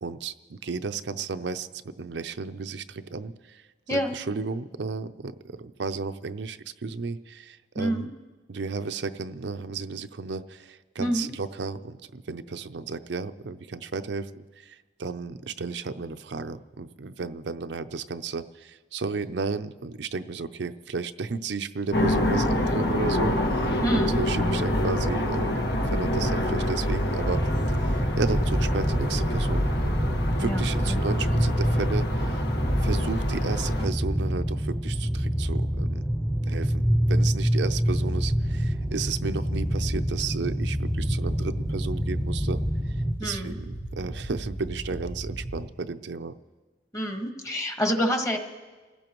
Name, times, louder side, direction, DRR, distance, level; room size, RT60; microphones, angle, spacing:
voice 1, 0.0-3.6 3.9-8.1 8.5-27.4 27.8-32.4 32.8-36.0 36.5-42.6 43.2-46.3, right 4 dB, 80° right, 9 dB, 0.5 m, -33 dB
voice 2, 7.7-8.1 11.0-11.3 23.8-24.2 30.4-31.0 43.2-43.6 46.9-48.4, equal, 20° left, 3 dB, 1.4 m, -27 dB
sound 1, 21.9-33.9, left 1 dB, 65° left, 1.4 m, -26 dB
sound 2, 27.3-43.1, equal, 5° right, 0.5 m, -27 dB
sound 3, 37.9-45.6, equal, 90° left, 2.7 m, -37 dB
28.5 x 15.5 x 3.0 m, 1.3 s
head